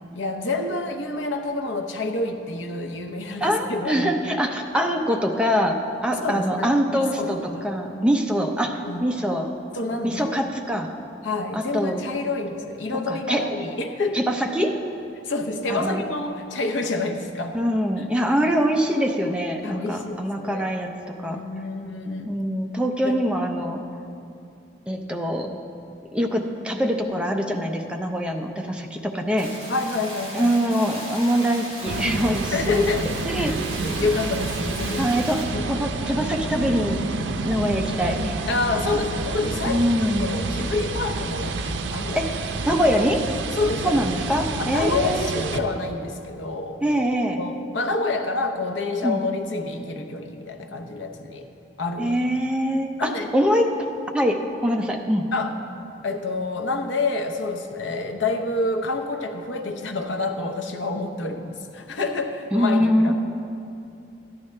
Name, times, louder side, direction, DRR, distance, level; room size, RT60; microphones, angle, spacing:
voice 1, 0.1-4.2 6.2-7.6 8.8-9.1 9.7-10.4 11.2-14.3 15.2-17.6 19.6-20.7 21.3-22.4 23.0-23.2 29.7-30.5 32.5-33.2 33.4-35.9 38.5-41.6 41.9-42.3 43.5-44.1 44.6-46.8 47.4-51.5 51.8-52.2 53.0-53.3 55.3-55.6 56.0-63.1, left 3 dB, 90° left, 5 dB, 0.8 m, -28 dB
voice 2, 3.4-9.5 10.0-10.9 11.5-12.0 13.1-13.4 14.1-14.8 15.7-16.0 17.5-21.4 22.2-23.8 24.9-25.5 26.1-29.5 30.3-32.9 33.3-33.6 33.9-34.1 35.0-35.4 35.7-37.0 37.4-38.4 39.7-40.3 42.1-42.3 42.7-43.2 43.8-45.3 46.8-47.4 49.0-49.2 52.0-53.7 54.1-55.3 62.5-63.1, equal, 5° right, 2 dB, 0.5 m, -24 dB
sound 1, 29.4-35.4, right 1 dB, 25° right, 2.6 m, -37 dB
sound 2, 31.9-45.6, right 3 dB, 85° right, 0.5 m, -29 dB
13.5 x 9.7 x 3.2 m, 2.6 s
head